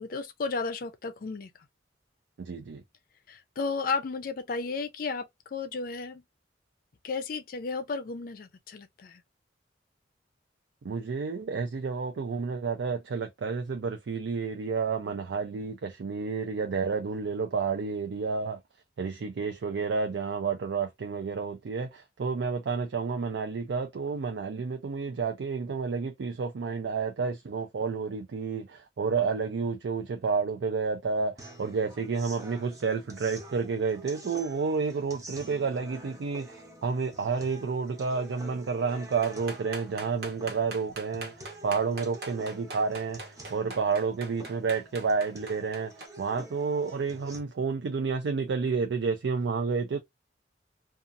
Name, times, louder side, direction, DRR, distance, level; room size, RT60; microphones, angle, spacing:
voice 1, 0.0-1.5 3.3-6.2 7.0-9.2, left 4 dB, 50° left, 0.4 m, -33 dB
voice 2, 2.4-2.8 10.8-18.6 19.0-50.0, right 5 dB, 80° right, 0.4 m, -30 dB
sound 1, 31.4-47.4, right 1 dB, 20° right, 0.7 m, -48 dB
sound 2, 39.2-46.1, right 2 dB, 60° right, 0.9 m, -41 dB
2.6 x 2.4 x 2.5 m
head